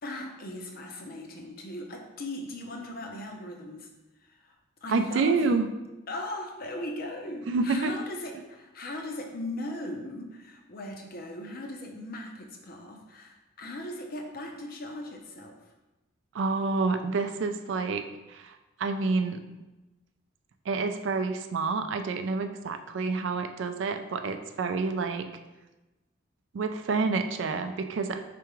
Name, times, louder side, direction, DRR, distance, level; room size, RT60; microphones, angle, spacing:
voice 1, 0.0-3.9 4.2-4.5 4.8-5.4 6.1-15.5, left 1 dB, 45° left, 2 dB, 0.6 m, -38 dB
voice 2, 4.9-5.7 7.5-7.9 16.3-19.4 20.7-25.3 26.5-28.2, right 4 dB, 65° right, 7 dB, 0.4 m, -28 dB
4.7 x 3.4 x 3.0 m, 1.1 s
head